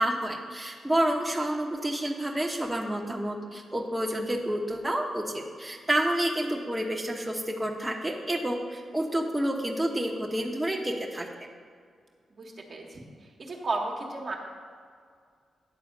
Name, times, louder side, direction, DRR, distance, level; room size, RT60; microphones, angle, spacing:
voice 1, 0.0-11.3, right 1 dB, 15° right, 0 dB, 1.2 m, -29 dB
voice 2, 12.4-13.0 13.4-14.4, right 3 dB, 55° right, 0 dB, 1.5 m, -33 dB
9.8 x 4.2 x 7.3 m, 2.1 s
supercardioid pair, 40°, 0 cm